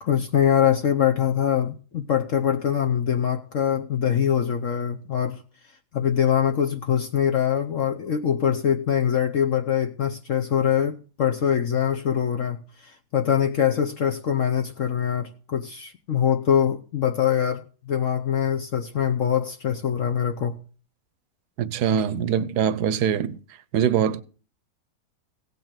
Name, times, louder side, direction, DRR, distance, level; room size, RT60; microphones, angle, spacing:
voice 1, 0.0-5.4 5.9-20.6, left 9 dB, 55° left, 1.0 m, -23 dB
voice 2, 21.6-23.4 23.7-24.2, right 8 dB, 70° right, 1.3 m, -23 dB
16.5 x 5.6 x 7.5 m
omnidirectional pair, 1.8 m